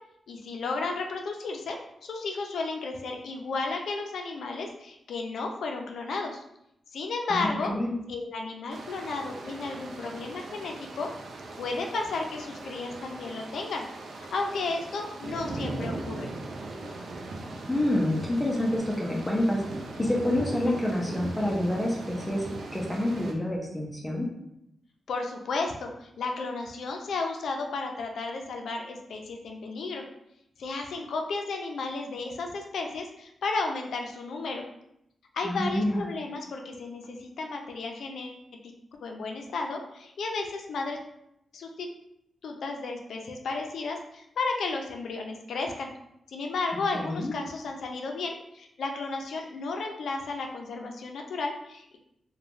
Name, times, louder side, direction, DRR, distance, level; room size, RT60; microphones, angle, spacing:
voice 1, 0.3-6.4 6.9-7.7 8.1-11.1 11.6-13.9 14.2-16.3 25.1-30.0 30.6-34.6 35.3-38.4 39.0-41.0 41.5-41.9 42.4-45.9 46.3-52.0, left 3 dB, 80° left, 2 dB, 0.4 m, -33 dB
voice 2, 7.3-7.9 17.7-19.6 20.0-22.4 22.7-24.3 35.4-36.0 46.9-47.3, left 1 dB, 10° left, -3 dB, 0.5 m, -27 dB
sound 1, 8.7-23.3, right 2 dB, 70° right, 0.4 m, -39 dB
3.0 x 2.2 x 2.5 m, 0.78 s
cardioid pair, 100°, 0 cm